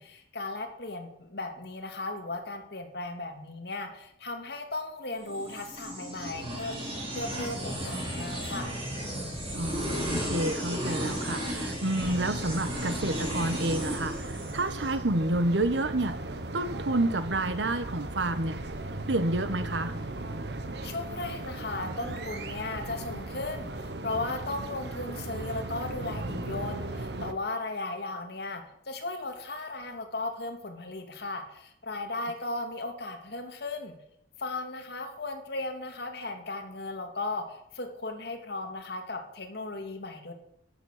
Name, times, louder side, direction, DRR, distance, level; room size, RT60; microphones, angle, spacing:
voice 1, 0.0-6.8 7.1-8.7 20.8-23.7 24.0-33.9 34.4-40.3, left 2 dB, 65° left, 4 dB, 2.5 m, -36 dB
sound 1, 5.2-14.9, equal, 30° right, 5.4 m, -34 dB
voice 2, 9.5-14.1 14.5-16.2 16.5-18.6 19.1-19.9, right 2 dB, 85° right, 12 dB, 1.2 m, -29 dB
sound 2, 12.0-27.3, right 2 dB, 65° right, 1.2 m, -37 dB
13.5 x 9.1 x 6.7 m, 0.78 s
head